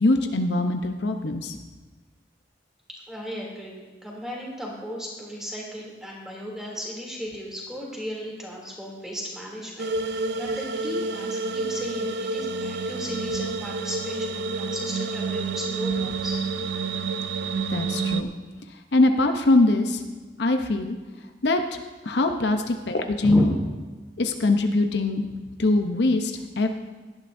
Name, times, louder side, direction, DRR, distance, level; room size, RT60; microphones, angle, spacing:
voice 1, 0.0-1.6 17.7-18.3 18.9-20.0 20.4-21.0 21.4-21.8 22.0-23.5 24.2-25.2 25.6-26.7, left 2 dB, 70° left, 5 dB, 0.7 m, -22 dB
voice 2, 2.9-16.4 23.2-23.5, equal, 5° right, -3 dB, 2.8 m, -35 dB
sound 1, 9.8-18.2, right 3 dB, 65° right, 0.5 m, -29 dB
17.5 x 12.0 x 2.6 m, 1.3 s
head